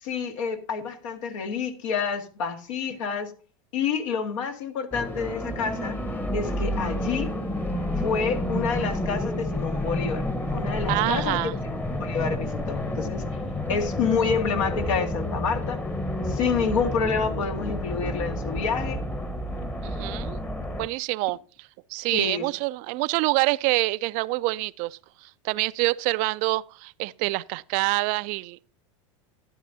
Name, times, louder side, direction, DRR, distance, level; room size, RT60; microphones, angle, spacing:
voice 1, 0.0-3.3 3.7-6.0 6.3-7.3 8.0-10.3 10.5-11.7 12.0-13.3 13.7-15.8 16.3-19.0 22.1-22.5, left 6 dB, 75° left, 1.9 m, -28 dB
sound 1, 4.9-20.9, left 1 dB, 10° left, 1.0 m, -30 dB
voice 2, 10.9-11.5 19.8-20.4 20.8-21.4 21.9-28.6, right 22 dB, 50° right, 0.4 m, -26 dB
12.0 x 11.5 x 2.7 m
hypercardioid pair, 105°, 16 cm